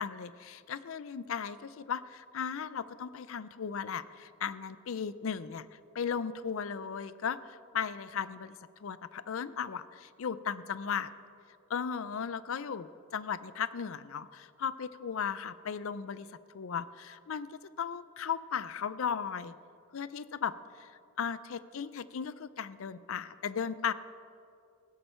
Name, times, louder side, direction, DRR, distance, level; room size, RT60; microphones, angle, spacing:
voice 1, 0.0-8.6 8.8-11.1 11.7-16.3 16.5-19.6 19.9-20.9 21.2-23.9, left 7 dB, 65° left, 16 dB, 0.5 m, -36 dB
15.5 x 12.5 x 4.4 m, 2.5 s
head